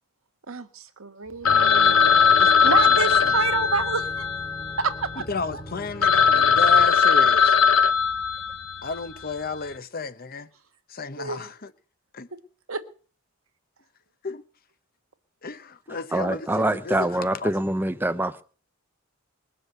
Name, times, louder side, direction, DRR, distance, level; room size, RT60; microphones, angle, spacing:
voice 1, 0.5-4.3 4.8-5.2 11.2-11.4 12.3-12.4 12.7-12.8, right 4 dB, 75° right, 1.4 m, -29 dB
sound 1, 1.4-6.9, equal, 25° left, 1.9 m, -39 dB
Telephone, 1.5-5.2 5.7-5.8 6.0-8.9, left 6 dB, 85° left, 0.8 m, -19 dB
voice 2, 2.4-2.8 5.3-7.6 8.8-10.5 10.9-11.5 12.1-12.3 14.2-14.4 15.4-17.5, left 4 dB, 45° left, 0.9 m, -33 dB
voice 3, 16.1-18.4, right 1 dB, 10° right, 0.6 m, -25 dB
21.0 x 7.1 x 8.1 m
head